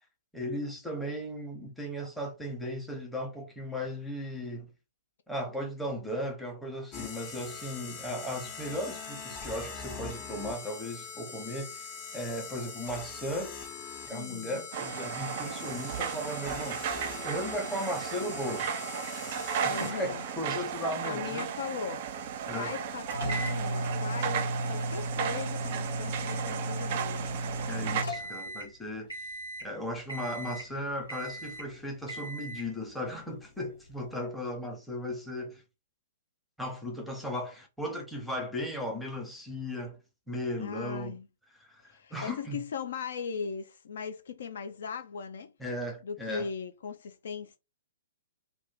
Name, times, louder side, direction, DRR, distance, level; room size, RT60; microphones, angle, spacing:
voice 1, 0.3-4.7 5.3-11.9 12.1-13.7 14.1-16.9 17.2-18.8 19.5-21.5 22.5-22.7 27.7-29.3 29.6-35.6 36.6-40.0 40.3-41.2 41.5-42.6 45.6-46.5, equal, ahead, 0.8 m, -36 dB
sound 1, 6.9-20.3, left 5 dB, 30° left, 0.8 m, -42 dB
voice 2, 14.1-14.6 19.7-20.2 21.0-22.1 22.5-27.3 40.6-41.3 41.9-45.5 46.0-47.6, left 6 dB, 60° left, 0.4 m, -38 dB
sound 2, 14.7-28.0, right 7 dB, 45° right, 0.4 m, -35 dB
sound 3, 23.1-28.8 29.1-29.7 30.1-30.7 31.1-31.7 32.1-32.7, right 1 dB, 90° left, 1.4 m, -35 dB
2.5 x 2.3 x 3.6 m
figure-of-eight pair, 115°, 0 cm